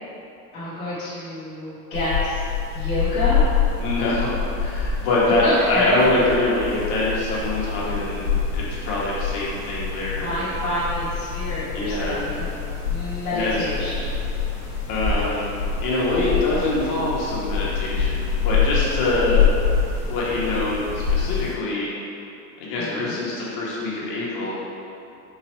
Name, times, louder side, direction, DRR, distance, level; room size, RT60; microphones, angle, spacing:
voice 1, 0.5-2.4 2.7-3.4 5.4-6.0 10.2-12.5 12.9-14.1 16.3-16.6 22.8-23.3, left 1 dB, 10° left, -12 dB, 0.4 m, -28 dB
sound 1, 1.9-21.5, left 6 dB, 65° left, 1.1 m, -26 dB
voice 2, 3.8-10.4 11.7-12.2 13.3-13.7 14.9-15.5 15.8-19.5 20.1-21.9 22.6-24.5, left 2 dB, 40° left, -6 dB, 1.0 m, -24 dB
4.1 x 2.9 x 2.9 m, 2.7 s
supercardioid pair, 140°, 48 cm